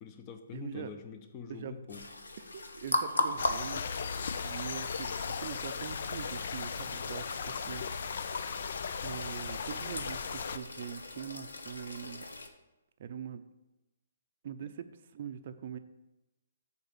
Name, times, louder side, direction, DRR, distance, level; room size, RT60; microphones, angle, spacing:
voice 1, 0.0-2.1 14.6-14.7, left 6 dB, 30° left, 7 dB, 0.8 m, -45 dB
voice 2, 0.5-0.9 1.5-1.7 2.4-3.8 4.4-7.8 9.0-12.3 13.0-13.4 14.4-14.9 15.1-15.8, right 8 dB, 50° right, 10 dB, 0.5 m, -42 dB
sound 1, 1.9-12.5, left 2 dB, 90° left, 0.9 m, -38 dB
sound 2, 3.4-10.6, left 6 dB, 60° left, 0.4 m, -37 dB
6.9 x 4.5 x 6.8 m, 0.99 s
hypercardioid pair, 140°, 0 cm